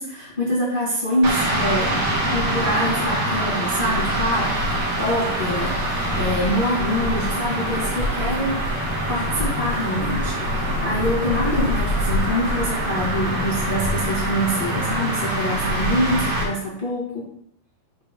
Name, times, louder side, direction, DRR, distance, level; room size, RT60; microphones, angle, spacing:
voice 1, 0.0-2.0 2.3-8.6 9.1-17.3, equal, 85° left, -6 dB, 0.4 m, -25 dB
sound 1, 1.2-16.4, right 1 dB, 45° right, 2.7 m, -24 dB
8.7 x 4.7 x 5.4 m, 0.69 s
omnidirectional pair, 5.0 m